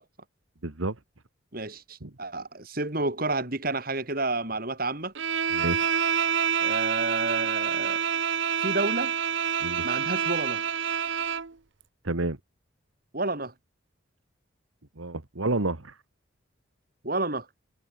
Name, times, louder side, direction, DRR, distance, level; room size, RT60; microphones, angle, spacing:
voice 1, 0.6-1.0 2.0-2.1 5.5-5.9 9.6-9.8 12.0-12.4 15.0-15.9, right 2 dB, 85° right, 1.8 m, -29 dB
voice 2, 1.5-5.1 6.6-8.0 8.6-9.1 9.8-10.6 13.1-13.5 17.0-17.5, right 2 dB, 45° right, 3.4 m, -30 dB
Bowed string instrument, 5.1-11.5, right 8 dB, 65° right, 1.0 m, -27 dB
head